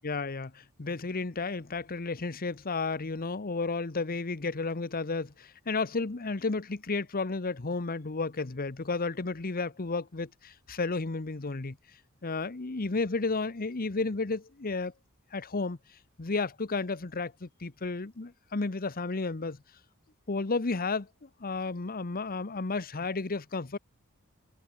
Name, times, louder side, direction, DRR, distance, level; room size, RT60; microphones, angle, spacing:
voice 1, 0.0-11.8 12.2-14.9 15.3-15.8 16.2-19.6 20.3-23.8, left 3 dB, 40° left, 0.9 m, -32 dB
head